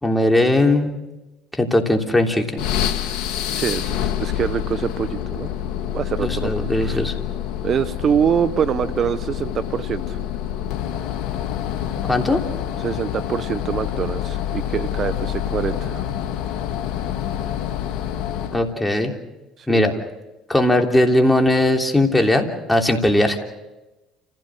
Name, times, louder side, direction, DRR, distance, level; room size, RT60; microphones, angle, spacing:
voice 1, 0.0-0.9 1.6-2.6 6.2-7.1 12.1-12.4 18.5-19.1 19.7-19.9 20.5-23.4, left 1 dB, 10° left, 2 dB, 3.3 m, -18 dB
sound 1, 2.6-18.7, left 10 dB, 70° left, 1.6 m, -27 dB
voice 2, 3.5-5.5 5.9-7.1 7.6-10.2 12.8-16.0 19.6-19.9, right 8 dB, 50° right, 14 dB, 0.8 m, -24 dB
29.5 x 16.0 x 6.4 m, 1.0 s
supercardioid pair, 75°, 0 cm